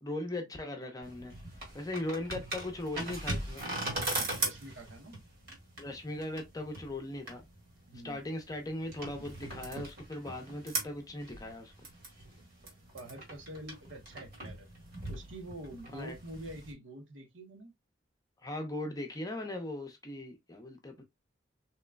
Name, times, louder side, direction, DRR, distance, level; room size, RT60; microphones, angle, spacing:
voice 1, 0.0-1.3 1.7-3.6 5.8-7.4 8.0-11.7 15.9-16.1 18.4-21.0, left 1 dB, 20° left, 0.6 m, -39 dB
sound 1, 1.0-16.7, right 2 dB, 50° right, 1.4 m, -40 dB
voice 2, 4.4-5.2 7.9-8.2 12.9-14.7 15.1-17.7, right 1 dB, 80° right, 1.0 m, -46 dB
3.6 x 3.0 x 2.2 m
head